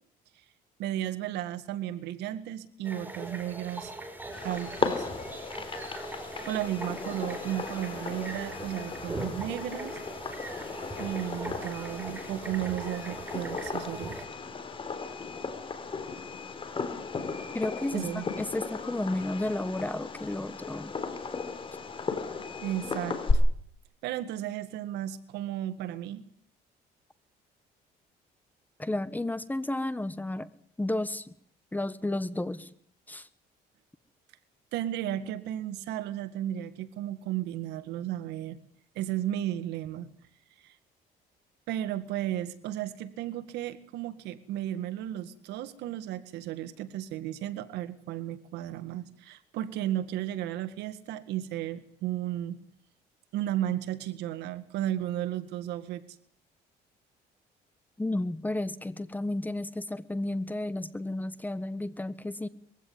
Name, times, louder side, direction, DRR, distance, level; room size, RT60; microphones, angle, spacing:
voice 1, 0.8-3.9 4.4-5.1 6.4-10.0 11.0-14.2 17.9-18.3 22.6-23.4 24.0-26.2 34.7-38.6 39.0-40.1 40.6-40.7 41.7-52.6 53.3-56.0, right 12 dB, 85° right, 12 dB, 1.9 m, -34 dB
sound 1, 2.8-14.3, right 1 dB, 10° right, 4.8 m, -41 dB
Fireworks, 4.3-23.3, left 4 dB, 30° left, 3.9 m, -36 dB
voice 2, 17.5-20.9 28.8-30.5 30.8-31.3 31.7-32.7 33.1-33.3 58.0-62.5, left 1 dB, 10° left, 16 dB, 1.3 m, -32 dB
22.5 x 16.0 x 9.4 m, 0.63 s
cardioid pair, 110°, 17 cm